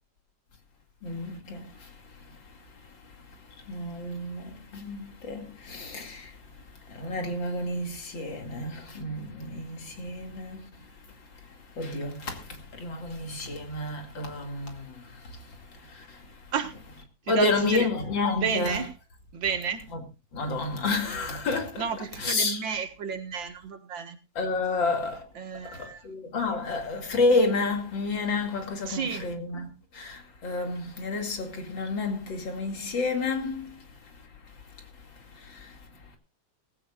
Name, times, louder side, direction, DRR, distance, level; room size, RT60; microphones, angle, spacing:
voice 1, 1.0-1.6 3.7-4.4 4.7-6.3 7.0-10.7 11.8-12.4 12.8-14.8 17.3-18.8 20.3-21.8 22.2-22.6 24.4-25.2 25.8-29.7 29.9-33.6, left 3 dB, 90° left, 3.1 m, -29 dB
voice 2, 17.3-17.9 18.3-18.9 19.3-19.8 21.8-24.2 25.4-26.0 28.9-29.2, right 6 dB, 85° right, 2.3 m, -31 dB
18.5 x 16.0 x 2.5 m
omnidirectional pair, 2.0 m